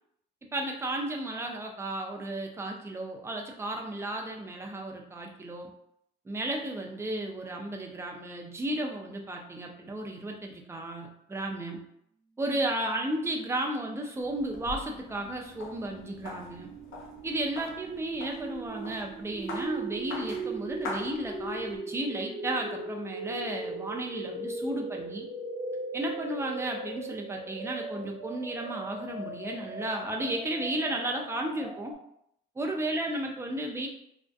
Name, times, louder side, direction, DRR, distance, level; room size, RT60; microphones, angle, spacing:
voice 1, 0.5-5.7 6.3-11.8 12.4-16.7 17.2-25.3 25.9-31.9 32.6-33.9, right 1 dB, 15° right, 1 dB, 0.4 m, -34 dB
sound 1, 13.2-32.0, right 2 dB, 65° right, 1.0 m, -39 dB
sound 2, 14.2-21.8, left 3 dB, 90° left, 0.5 m, -43 dB
2.6 x 2.1 x 2.3 m, 0.74 s
cardioid pair, 90°, 20 cm